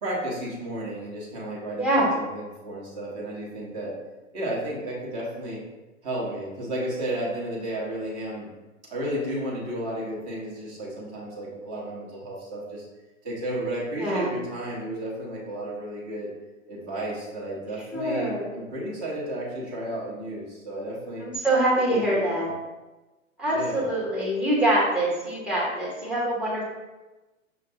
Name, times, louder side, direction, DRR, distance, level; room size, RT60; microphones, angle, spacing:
voice 1, 0.0-3.9 4.3-5.6 6.0-8.5 8.9-12.9 13.2-16.3 16.7-21.2 21.9-22.5 23.5-23.9, right 1 dB, 30° right, -5 dB, 1.1 m, -33 dB
voice 2, 1.8-2.1 14.0-14.3 17.9-18.5 21.2-22.5 23.4-26.6, right 1 dB, 5° right, -5 dB, 0.7 m, -24 dB
5.6 x 2.5 x 2.7 m, 1.1 s
figure-of-eight pair, 110°, 39 cm